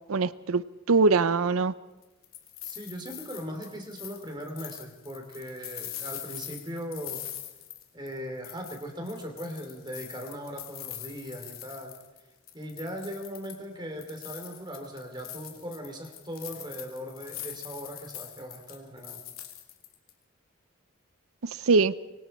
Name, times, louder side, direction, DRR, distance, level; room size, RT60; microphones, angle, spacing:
voice 1, 0.1-1.7 21.4-21.9, right 4 dB, 85° right, 16 dB, 0.6 m, -23 dB
sound 1, 2.0-8.2 8.4-12.2 12.5-13.7 14.0-20.1, left 12 dB, 85° left, 2.8 m, -43 dB
voice 2, 2.6-7.3 7.9-12.0 12.5-19.2, equal, 20° right, 4 dB, 3.2 m, -39 dB
25.0 x 24.5 x 4.4 m, 1.1 s
head